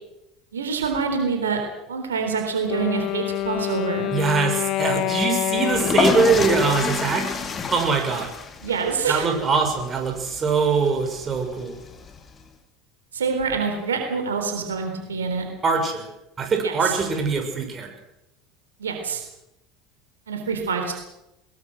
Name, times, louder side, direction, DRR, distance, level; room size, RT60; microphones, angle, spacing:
voice 1, 0.5-1.6 1.9-4.1 8.6-9.3 13.1-15.4 16.6-17.0 18.8-19.2 20.3-20.9, right 5 dB, 85° right, 4 dB, 3.8 m, -26 dB
Wind instrument woodwind instrument, 2.7-7.7, left 15 dB, 55° left, 0.8 m, -27 dB
voice 2, 4.1-8.3 9.1-11.7 15.6-16.1 16.4-17.9, right 5 dB, 30° right, 4 dB, 6.4 m, -23 dB
sound 1, 5.7-12.4, left 5 dB, 30° left, 3.1 m, -29 dB
22.5 x 21.5 x 6.4 m, 0.90 s
hypercardioid pair, 75°, 0 cm